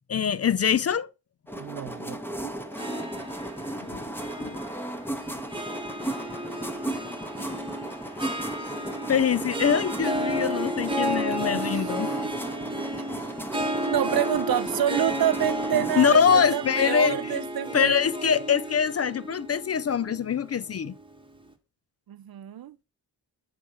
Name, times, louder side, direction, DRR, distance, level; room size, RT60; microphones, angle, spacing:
voice 1, 0.1-1.1 3.8-4.1 4.4-4.6 9.1-12.1 15.7-17.4 17.7-20.9, left 7 dB, 40° left, 0.4 m, -24 dB
sound 1, 1.5-16.2, right 1 dB, 5° left, 1.2 m, -35 dB
voice 2, 1.6-2.5 11.5-12.3 13.9-18.0 22.1-22.8, right 11 dB, 60° right, 0.6 m, -28 dB
Harp, 2.7-21.2, right 1 dB, 10° right, 1.5 m, -33 dB
8.2 x 3.2 x 5.5 m
cardioid pair, 55°, 41 cm